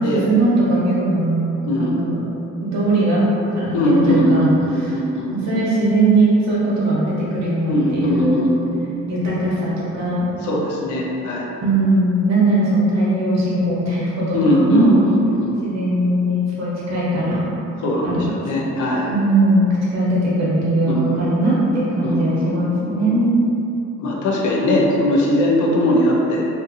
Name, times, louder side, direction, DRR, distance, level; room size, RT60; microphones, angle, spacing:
voice 1, 0.0-1.4 1.8-2.2 2.6-3.2 3.5-4.5 5.3-8.4 9.1-10.3 11.6-15.0 15.6-17.4 18.0-18.3 19.1-23.4, right 2 dB, 60° right, -7 dB, 1.0 m, -19 dB
voice 2, 1.7-2.0 3.7-5.3 7.7-8.9 10.4-11.5 14.3-15.6 17.8-19.1 20.8-21.3 22.0-23.2 24.0-26.5, left 1 dB, 80° left, -3 dB, 0.6 m, -20 dB
2.6 x 2.6 x 2.6 m, 2.7 s
cardioid pair, 90°, 30 cm